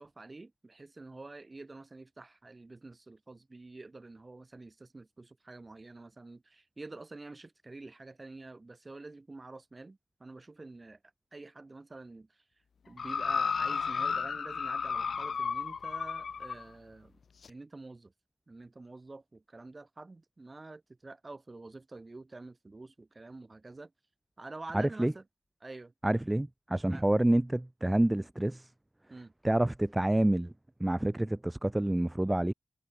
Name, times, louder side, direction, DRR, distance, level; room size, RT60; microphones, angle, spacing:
voice 1, 0.0-11.0 11.3-12.4 12.9-17.2 17.5-18.1 18.5-23.9 24.4-25.2 25.6-25.9 26.9-27.0 29.1-29.3, right 3 dB, 30° right, 2.4 m, -48 dB
sound 1, 13.0-16.6 17.4-17.5, left 6 dB, 70° left, 0.4 m, -33 dB
voice 2, 24.7-25.1 26.0-28.7 29.4-30.5 30.8-32.5, right 1 dB, 15° right, 0.4 m, -28 dB
cardioid pair, 80°, 0 cm